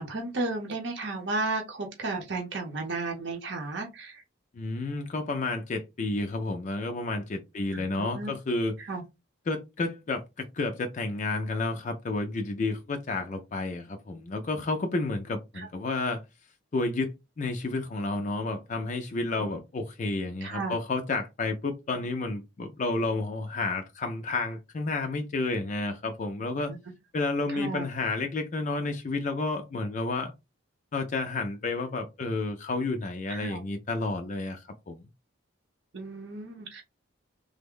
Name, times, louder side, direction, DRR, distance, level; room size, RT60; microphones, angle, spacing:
voice 1, 0.0-4.2 7.7-8.3 8.8-9.0 15.6-15.7 20.4-20.7 27.5-27.8 33.3-33.6 35.9-36.8, right 3 dB, 60° right, 0.7 m, -33 dB
voice 2, 4.5-8.8 9.5-16.2 16.7-26.7 27.1-30.3 30.9-35.0, left 3 dB, 40° left, 0.3 m, -31 dB
3.4 x 2.0 x 3.6 m
head